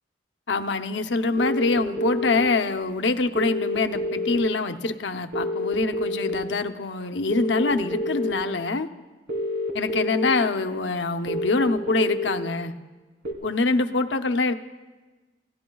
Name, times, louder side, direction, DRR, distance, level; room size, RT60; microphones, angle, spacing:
voice 1, 0.5-8.9 9.7-12.7 13.4-14.5, left 3 dB, 85° left, 7 dB, 0.8 m, -25 dB
sound 1, 1.4-2.4 3.4-4.4 5.3-6.3 7.3-8.3 9.3-10.3 11.3-12.3 13.2-13.3, left 1 dB, 90° right, 3.2 m, -28 dB
29.5 x 16.0 x 2.3 m, 1.2 s
head